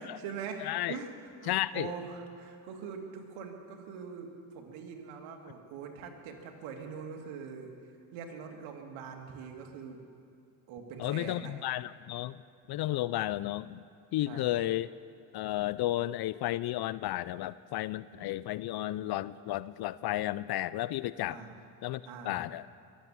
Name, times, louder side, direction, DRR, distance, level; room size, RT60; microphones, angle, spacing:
voice 1, 0.0-7.7 8.1-10.0 10.7-11.5 14.3-14.4 21.3-21.6 22.0-22.4, right 6 dB, 75° right, 4 dB, 2.1 m, -43 dB
voice 2, 0.6-1.0 1.5-1.9 11.0-12.4 12.7-13.8 14.1-14.9 15.3-21.4 21.8-22.6, left 15 dB, 50° left, 18 dB, 0.5 m, -33 dB
22.5 x 8.1 x 7.2 m, 2.4 s
supercardioid pair, 65°, 49 cm